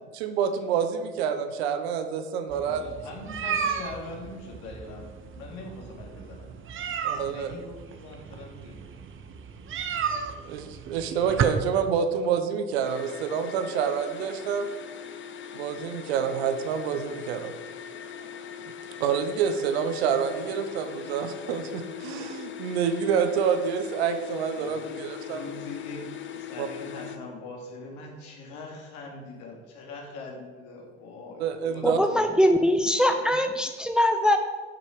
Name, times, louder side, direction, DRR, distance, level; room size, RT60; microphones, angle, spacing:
voice 1, 0.1-2.8 7.0-7.6 10.4-14.7 15.5-17.5 19.0-25.4 26.6-26.7 31.4-32.0, right 7 dB, 70° right, 8 dB, 1.1 m, -27 dB
sound 1, 2.5-11.4, right 7 dB, 40° right, 1.1 m, -34 dB
voice 2, 2.6-5.1 5.3-6.5 7.3-8.8 24.6-26.0 26.4-32.3, left 3 dB, 60° left, 0 dB, 2.9 m, -42 dB
sound 2, 12.8-27.2, left 8 dB, 35° left, 0.9 m, -40 dB
voice 3, 31.8-34.4, equal, ahead, 6 dB, 0.8 m, -22 dB
10.5 x 7.4 x 5.1 m, 1.5 s
figure-of-eight pair, 65°, 33 cm